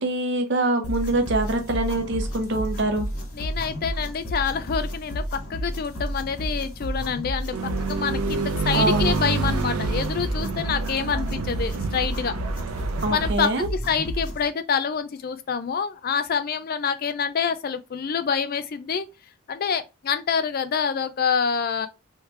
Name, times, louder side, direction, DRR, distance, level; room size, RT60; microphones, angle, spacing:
voice 1, 0.0-3.1 8.7-9.1 13.0-13.7, right 2 dB, 55° right, 0.7 m, -24 dB
sound 1, 0.8-14.5, equal, 85° left, 1.7 m, -32 dB
voice 2, 3.3-12.3 13.1-19.1 19.5-21.9, left 6 dB, 40° left, 0.3 m, -27 dB
sound 2, 7.5-13.3, right 4 dB, 85° right, 0.4 m, -28 dB
3.2 x 3.1 x 3.1 m
head